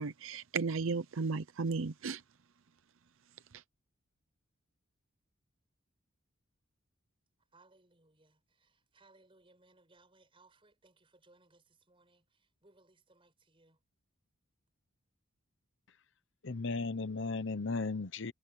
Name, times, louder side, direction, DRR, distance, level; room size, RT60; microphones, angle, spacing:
voice 1, 0.0-2.2 3.5-3.6, right 4 dB, 70° right, 0.6 m, -35 dB
voice 2, 7.5-12.2 12.6-13.8, right 2 dB, 25° right, 6.1 m, -66 dB
voice 3, 16.4-18.3, left 3 dB, 60° left, 0.9 m, -35 dB
head